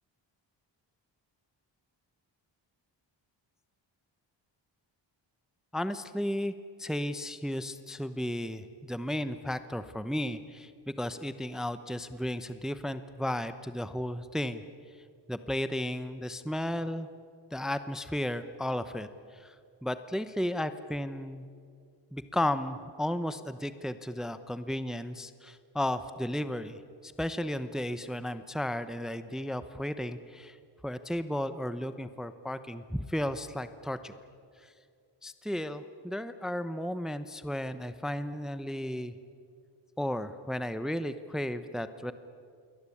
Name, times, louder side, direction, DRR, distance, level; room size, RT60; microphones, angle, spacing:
voice 1, 5.7-6.5 6.8-14.6 15.3-17.1 17.5-19.6 19.8-21.5 22.1-30.6 30.8-34.1 34.6-34.7 35.2-39.1 40.0-42.1, left 1 dB, ahead, 11 dB, 0.9 m, -34 dB
27.5 x 23.0 x 8.5 m, 2.3 s
wide cardioid pair, 125°, 45 cm